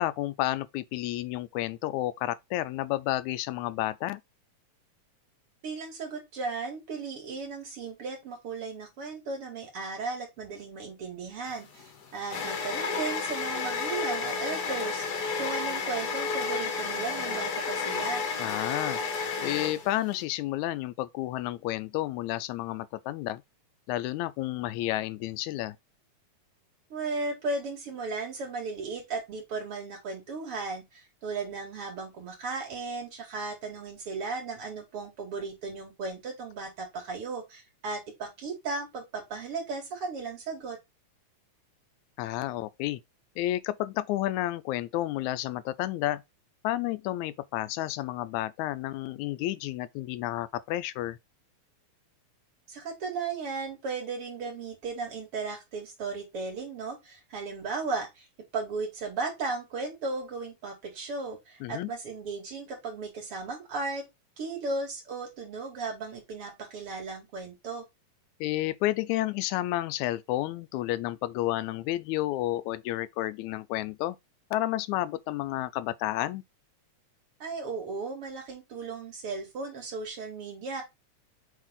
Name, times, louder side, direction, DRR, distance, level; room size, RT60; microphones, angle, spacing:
voice 1, 0.0-4.2 18.4-23.4 23.9-25.8 42.2-43.0 43.4-46.2 46.6-51.2 61.6-61.9 68.4-74.2 74.5-76.4, left 15 dB, 85° left, 1.9 m, -31 dB
voice 2, 5.6-18.2 26.9-40.8 52.7-58.3 58.5-64.0 64.4-67.8 77.4-80.8, right 4 dB, 50° right, 3.0 m, -36 dB
sound 1, 11.5-20.2, left 5 dB, 50° left, 1.2 m, -32 dB
7.4 x 3.4 x 3.8 m
omnidirectional pair, 3.3 m